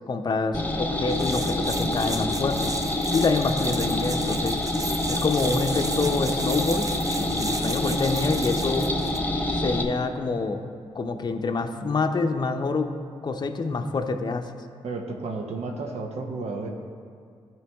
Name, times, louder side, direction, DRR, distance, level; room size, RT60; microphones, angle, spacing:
voice 1, 0.1-2.7 3.1-4.6 5.1-6.9 7.2-8.9 9.5-10.7 10.9-13.0 13.2-14.5, left 3 dB, 40° left, 6 dB, 0.6 m, -26 dB
sound 1, 0.5-9.8, left 1 dB, 15° left, 0.8 m, -27 dB
sound 2, 1.1-9.2, right 3 dB, 30° right, 0.5 m, -36 dB
voice 2, 14.8-16.7, right 3 dB, 70° right, 2 dB, 0.8 m, -32 dB
13.0 x 4.6 x 3.5 m, 2.2 s
cardioid pair, 60°, 11 cm